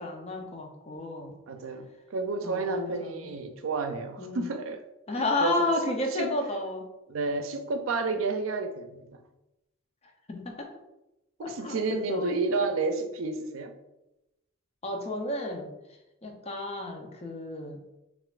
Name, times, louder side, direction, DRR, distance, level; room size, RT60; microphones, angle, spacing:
voice 1, 0.0-1.3 2.4-3.3 4.2-4.5 5.1-6.8 10.3-10.7 11.4-12.3 14.8-15.7 16.2-17.8, left 2 dB, 30° left, 2 dB, 0.6 m, -32 dB
voice 2, 1.5-4.8 5.2-5.8 6.1-6.3 7.1-9.2 11.4-13.7, right 3 dB, 80° right, 7 dB, 0.5 m, -31 dB
5.5 x 2.4 x 2.4 m, 0.94 s
head